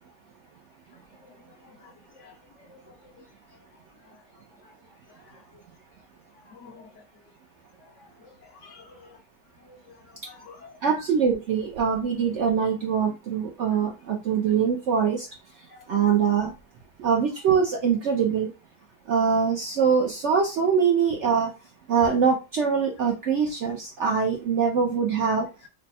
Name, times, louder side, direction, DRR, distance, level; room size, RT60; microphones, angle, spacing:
voice 1, 6.5-6.9 8.2-8.3 8.6-9.1 9.7-10.0 10.3-10.6 15.7-15.8, left 5 dB, 65° left, 2 dB, 0.8 m, -49 dB
voice 2, 10.8-15.3 15.5-16.5 17.0-18.5 19.1-21.5 21.9-25.5, right 6 dB, 65° right, 1 dB, 0.7 m, -23 dB
3.3 x 2.0 x 4.1 m, 0.29 s
omnidirectional pair, 1.7 m